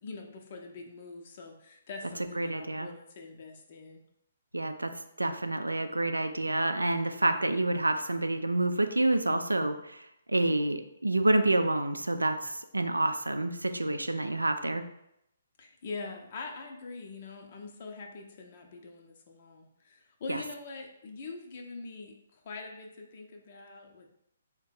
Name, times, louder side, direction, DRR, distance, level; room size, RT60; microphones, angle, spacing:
voice 1, 0.0-4.0 15.6-24.1, left 3 dB, 45° left, 2 dB, 0.6 m, -44 dB
voice 2, 2.4-2.9 4.5-4.9 5.2-14.8 20.3-20.4, right 2 dB, 85° right, 7 dB, 0.4 m, -28 dB
3.5 x 2.2 x 4.2 m, 0.79 s
figure-of-eight pair, 130°, 0 cm